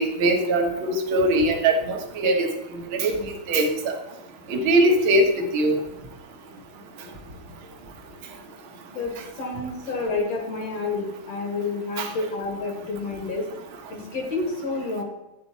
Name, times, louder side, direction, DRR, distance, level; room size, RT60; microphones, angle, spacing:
voice 1, 0.0-2.5 2.9-4.0 4.5-5.8 12.0-12.1, right 1 dB, 50° right, 2 dB, 1.9 m, -21 dB
voice 2, 8.9-13.5 13.9-15.0, left 3 dB, 55° left, 1 dB, 3.2 m, -29 dB
11.0 x 8.7 x 4.2 m, 0.96 s
omnidirectional pair, 3.4 m